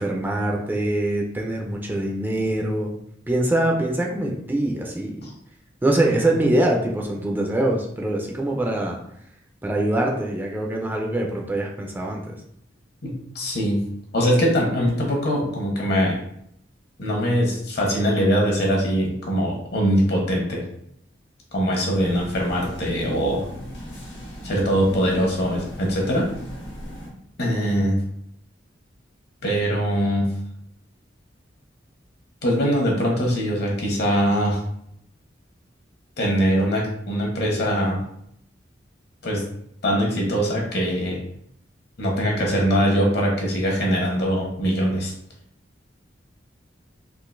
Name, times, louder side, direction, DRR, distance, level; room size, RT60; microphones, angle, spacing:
voice 1, 0.0-2.9 3.3-5.2 5.8-9.0 9.6-12.4, right 1 dB, 10° right, 0 dB, 0.4 m, -23 dB
voice 2, 13.0-13.8 14.1-16.2 17.0-20.6 21.5-23.5 24.4-26.3 27.4-28.0 29.4-30.3 32.4-34.6 36.2-38.0 39.2-39.4 39.8-41.2 42.0-45.1, equal, 60° left, -1 dB, 1.0 m, -22 dB
sound 1, 21.9-27.1, equal, 85° left, 1.2 m, -38 dB
3.7 x 2.5 x 2.5 m, 0.72 s
head